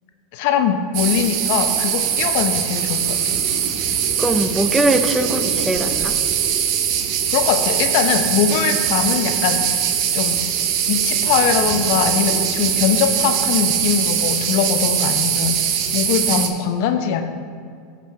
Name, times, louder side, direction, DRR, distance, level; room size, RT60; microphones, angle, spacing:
voice 1, 0.3-3.4 7.3-9.8 10.1-10.4 10.9-15.6 15.9-17.2, left 8 dB, 65° left, 7 dB, 0.7 m, -21 dB
sound 1, 0.9-16.5, right 8 dB, 60° right, 0.8 m, -21 dB
voice 2, 4.2-6.2 16.3-16.4, right 1 dB, 10° right, 7 dB, 0.6 m, -21 dB
14.0 x 5.3 x 3.2 m, 2.2 s
hypercardioid pair, 105°, 0 cm